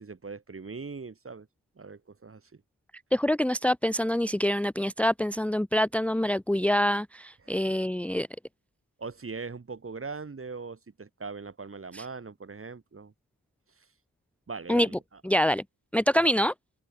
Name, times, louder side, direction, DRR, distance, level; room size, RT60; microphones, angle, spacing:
voice 1, 0.0-1.5 1.8-2.4 7.4-7.7 9.0-13.1 14.5-15.2 16.1-16.3, right 4 dB, 40° right, 6.4 m, -40 dB
voice 2, 3.1-8.3 11.9-12.0 14.7-14.9 15.2-15.6 15.9-16.5, left 1 dB, 5° left, 0.9 m, -25 dB
open air
wide cardioid pair, 165°, 35 cm